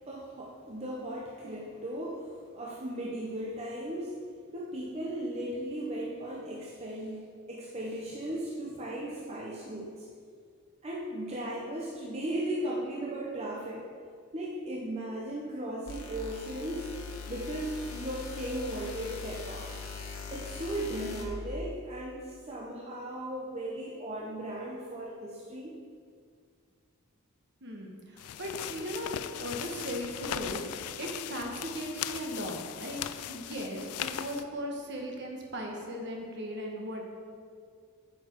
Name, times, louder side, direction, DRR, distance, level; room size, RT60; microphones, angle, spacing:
voice 1, 0.1-4.2 4.5-10.1 10.8-13.9 14.3-16.9 17.3-19.7 20.3-25.8, right 1 dB, 30° right, -3 dB, 0.8 m, -37 dB
sound 1, 15.9-21.2, left 4 dB, 70° left, 1.2 m, -41 dB
voice 2, 27.6-30.6 31.0-33.0 33.3-37.0, equal, 50° right, 0 dB, 1.4 m, -37 dB
sound 2, 28.2-34.4, left 10 dB, 90° left, 0.4 m, -38 dB
8.7 x 7.1 x 4.5 m, 2.1 s
head